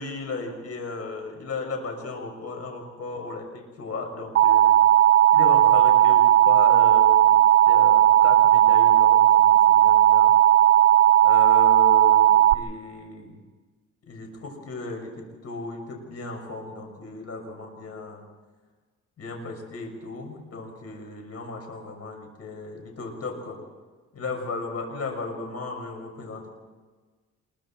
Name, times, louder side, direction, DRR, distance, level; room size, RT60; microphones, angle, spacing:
voice 1, 0.0-4.8 5.3-7.4 7.6-10.4 11.2-13.4 14.1-18.2 19.2-23.6 24.1-26.5, left 3 dB, 55° left, 2 dB, 6.5 m, -35 dB
Alarm, 4.4-12.5, right 11 dB, 50° right, 0.8 m, -16 dB
27.0 x 23.0 x 4.5 m, 1.4 s
cardioid pair, 90°, 30 cm